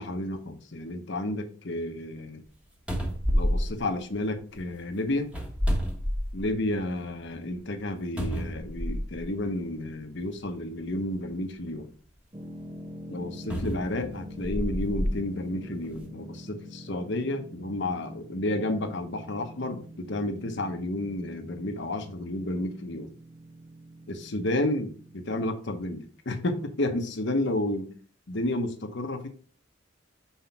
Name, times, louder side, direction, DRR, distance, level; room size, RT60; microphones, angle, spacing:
voice 1, 0.0-2.4 3.3-5.3 6.3-11.9 13.1-23.1 24.1-27.9 28.3-29.3, left 1 dB, 65° left, 1.0 m, -31 dB
sound 1, 2.5-2.6 2.9-4.6 5.3-6.7 7.1-7.2 8.2-9.3 10.2-10.3 13.5-15.2 15.8-16.0, equal, 5° right, 1.3 m, -29 dB
sound 2, 12.3-25.5, equal, 25° right, 0.6 m, -45 dB
5.7 x 4.8 x 4.5 m
head